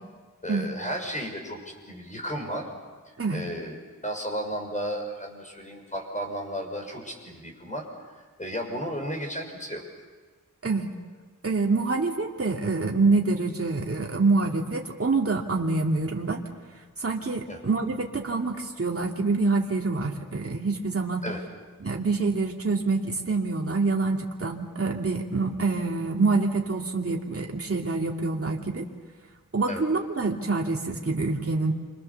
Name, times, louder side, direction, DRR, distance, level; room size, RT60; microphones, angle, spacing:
voice 1, 0.4-2.7 3.3-3.8 4.0-7.8 8.4-9.8 17.5-17.6 21.2-21.4 29.7-29.8, equal, 25° left, 2 dB, 6.2 m, -33 dB
voice 2, 11.4-16.4 17.0-21.2 21.8-28.8 29.5-31.7, right 3 dB, 45° right, -1 dB, 2.6 m, -26 dB
29.0 x 25.5 x 7.1 m, 1.4 s
wide cardioid pair, 85°, 32 cm